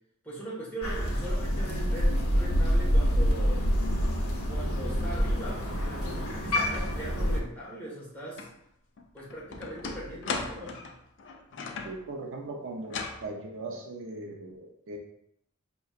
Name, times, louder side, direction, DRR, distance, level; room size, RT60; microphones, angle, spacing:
voice 1, 0.2-3.7 4.5-8.5 9.1-10.8, right 1 dB, 10° left, -7 dB, 1.5 m, -40 dB
Crow, 0.8-7.4, equal, 85° left, 0.9 m, -27 dB
sound 1, 8.4-8.5 9.0-12.0 12.8-13.3, left 4 dB, 55° left, 0.5 m, -37 dB
voice 2, 11.8-13.0 13.2-15.0, right 2 dB, 60° right, 1 dB, 0.6 m, -39 dB
5.2 x 2.9 x 2.4 m, 0.76 s
head